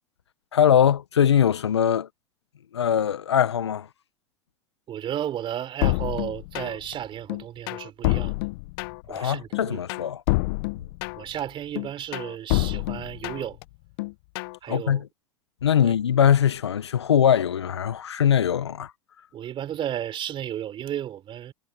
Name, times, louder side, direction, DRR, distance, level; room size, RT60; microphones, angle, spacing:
voice 1, 0.5-2.1 2.7-3.9 9.1-10.2 14.7-15.1 15.6-18.9, left 9 dB, 80° left, 1.6 m, -21 dB
voice 2, 4.9-8.4 9.1-9.8 11.2-13.6 14.6-15.0 15.8-15.9 19.3-21.5, right 10 dB, 35° right, 4.2 m, -33 dB
sound 1, 5.8-6.9 7.3-9.2 9.5-11.4 11.8-13.6 14.0-14.6, left 24 dB, 60° left, 1.0 m, -27 dB
hypercardioid pair, 85°, 14 cm